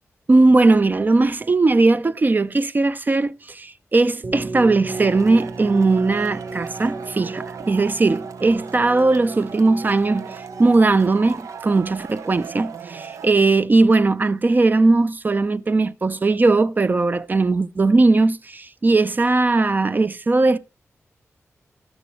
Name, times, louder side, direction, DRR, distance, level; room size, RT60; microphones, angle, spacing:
voice 1, 0.3-20.6, right 3 dB, 35° right, 0.6 m, -18 dB
sound 1, 4.2-11.7, right 3 dB, 60° right, 4.0 m, -35 dB
Male speech man speaking / Shout / Clapping, 4.9-13.3, right 6 dB, 85° right, 0.9 m, -37 dB
13.5 x 11.5 x 3.1 m
wide cardioid pair, 85°, 5 cm